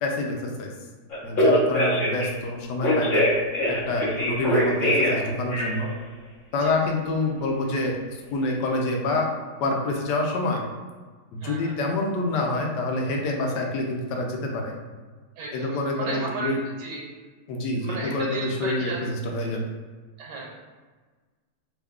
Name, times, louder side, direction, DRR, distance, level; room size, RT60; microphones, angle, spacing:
voice 1, 0.0-0.7 1.2-3.3 3.7-5.9 6.5-8.0 8.3-9.3 9.6-10.6 11.3-14.7 15.5-16.6 17.5-19.7, left 2 dB, 80° left, 1 dB, 1.2 m, -27 dB
Telephone, 1.1-2.2 2.8-5.2 5.5-5.9, equal, 40° left, 0.8 m, -22 dB
voice 2, 11.4-11.7 15.4-17.0 17.8-19.0 20.2-20.6, right 3 dB, 85° right, -2 dB, 1.2 m, -34 dB
3.1 x 2.4 x 3.5 m, 1.4 s
omnidirectional pair, 1.8 m